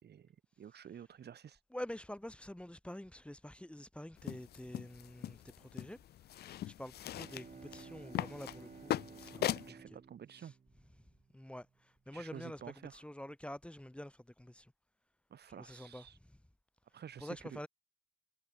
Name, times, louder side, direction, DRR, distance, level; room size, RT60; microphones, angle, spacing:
voice 1, 0.0-1.6 9.4-10.5 12.1-13.0 15.3-16.2 16.9-17.6, right 9 dB, 55° right, 2.6 m, -51 dB
voice 2, 1.7-6.0 6.4-9.8 10.4-10.5 11.3-14.7 15.6-16.0 17.2-17.7, left 1 dB, 5° left, 5.8 m, -47 dB
sound 1, 4.2-9.7, left 12 dB, 55° left, 0.4 m, -41 dB
Bowed string instrument, 6.9-11.6, right 6 dB, 40° right, 3.3 m, -55 dB
cardioid pair, 90°, 20 cm